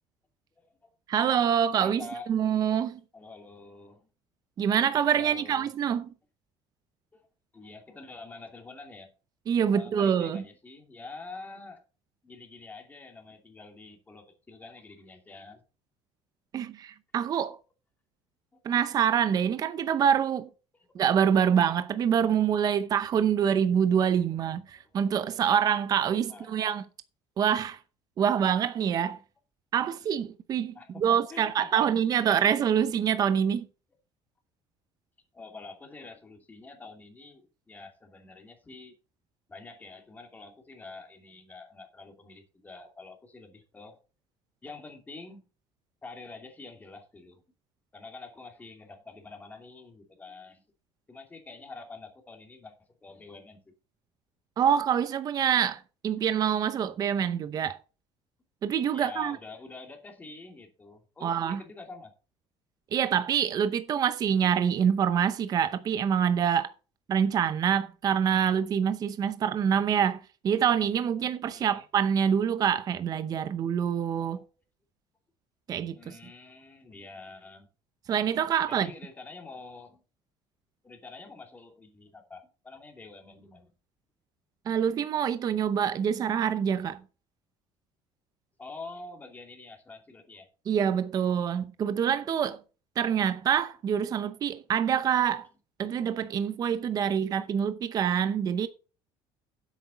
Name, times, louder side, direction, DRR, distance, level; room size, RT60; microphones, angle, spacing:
voice 1, 0.6-0.9 1.8-2.3 3.1-4.1 5.1-5.7 7.1-7.3 7.5-9.1 9.7-11.8 12.2-15.6 18.5-18.8 20.7-21.0 24.3-24.4 24.7-25.1 26.3-26.6 30.7-31.9 35.3-38.9 39.5-44.0 44.6-45.5 46.0-47.4 47.9-50.6 51.1-53.7 58.9-62.1 71.5-71.8 73.5-73.6 74.2-74.4 75.9-77.7 78.7-80.0 80.8-83.7 88.6-90.5 96.4-96.5 96.9-97.1, left 3 dB, 15° left, 2.6 m, -47 dB
voice 2, 1.1-2.0 2.3-3.0 4.6-6.1 9.5-10.4 16.5-17.6 18.6-20.5 20.9-26.8 27.4-27.8 28.2-29.2 29.7-33.7 54.6-57.8 58.6-59.4 61.2-61.6 62.9-66.7 67.1-74.4 75.7-76.2 78.1-78.9 84.7-87.0 90.7-92.6 93.0-95.5 95.8-98.7, right 8 dB, 35° right, 0.7 m, -26 dB
10.0 x 8.3 x 4.0 m
cardioid pair, 140°, 11 cm